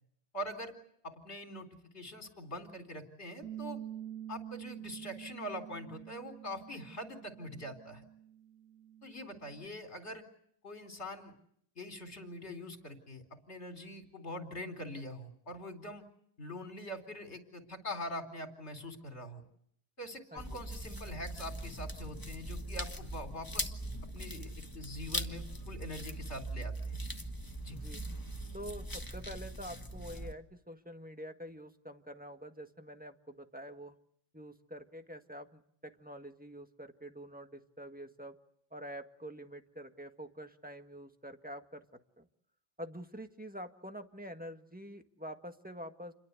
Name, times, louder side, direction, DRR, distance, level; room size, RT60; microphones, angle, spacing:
voice 1, 0.3-0.7 1.0-1.7 1.9-3.8 4.3-8.0 9.0-10.2 10.6-11.3 11.8-16.1 16.4-19.4 20.0-23.7 24.1-27.0 27.6-27.8, left 1 dB, 35° left, 5 dB, 4.3 m, -43 dB
Bass guitar, 3.4-9.7, right 10 dB, 60° right, 2.3 m, -47 dB
sound 1, 20.4-30.3, right 1 dB, 10° left, 1.4 m, -41 dB
voice 2, 27.7-28.0 28.5-34.0 34.3-38.3 38.7-41.8 42.2-42.3 42.8-46.1, equal, 5° right, 6 dB, 1.4 m, -46 dB
29.5 x 22.5 x 8.3 m, 0.70 s
omnidirectional pair, 2.1 m